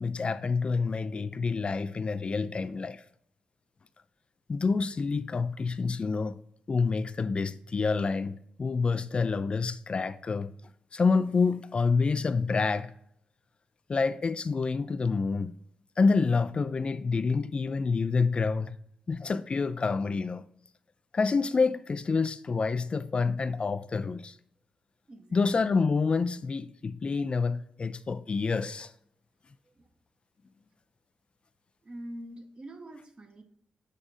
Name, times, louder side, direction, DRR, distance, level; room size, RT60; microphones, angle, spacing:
voice 1, 0.0-3.0 4.5-6.4 6.7-8.3 8.6-10.5 10.9-12.9 13.9-15.5 16.0-18.8 19.1-20.4 21.1-24.4 25.3-28.9, left 4 dB, 45° left, 0.3 m, -27 dB
voice 2, 25.1-25.5 29.7-29.9 31.8-33.4, right 1 dB, 40° right, 1.1 m, -44 dB
8.2 x 3.8 x 3.7 m
supercardioid pair, 40°, 3 cm